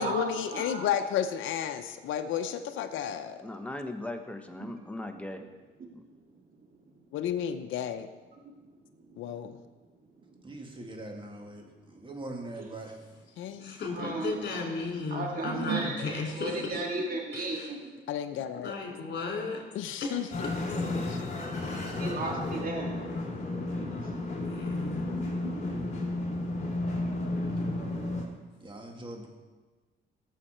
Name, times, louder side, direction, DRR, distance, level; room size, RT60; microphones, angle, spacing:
voice 1, 0.0-3.4 7.1-8.1 9.2-9.6 13.4-13.8 18.1-18.7 19.7-20.5 21.0-21.3, left 9 dB, 80° left, 7 dB, 0.7 m, -32 dB
voice 2, 0.5-0.9 14.0-14.4 15.1-16.1 16.4-17.8 22.0-23.0, right 3 dB, 45° right, 0 dB, 2.4 m, -33 dB
voice 3, 3.4-5.4 5.9-6.0, left 2 dB, 5° left, 5 dB, 1.3 m, -38 dB
voice 4, 10.4-13.0 28.6-29.3, right 2 dB, 25° right, 2 dB, 2.2 m, -42 dB
voice 5, 13.6-16.8 17.3-17.7 18.6-19.6 20.0-20.3 24.4-25.2 27.4-27.8, left 4 dB, 60° left, -1 dB, 4.1 m, -35 dB
sound 1, 20.3-28.3, left 2 dB, 35° left, 3.4 m, -32 dB
17.5 x 7.3 x 4.4 m, 1.3 s
cardioid pair, 90°, 20 cm